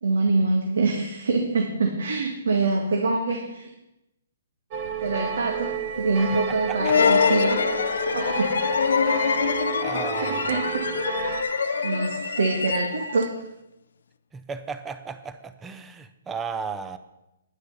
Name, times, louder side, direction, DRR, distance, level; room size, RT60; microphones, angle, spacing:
voice 1, 0.0-3.7 5.0-5.7 6.0-8.5 10.3-10.6 11.8-13.3, right 3 dB, 85° right, 1 dB, 1.9 m, -25 dB
sound 1, 4.7-11.4, right 6 dB, 25° right, 1.0 m, -32 dB
sound 2, 5.0-13.5, right 10 dB, 55° right, 0.6 m, -40 dB
voice 2, 6.3-7.1 9.8-10.6 14.3-17.0, right 5 dB, 10° right, 11 dB, 0.5 m, -35 dB
sound 3, 6.8-13.2, left 6 dB, 70° left, 0.4 m, -24 dB
10.5 x 9.9 x 5.8 m, 0.92 s
hypercardioid pair, 175°, 0 cm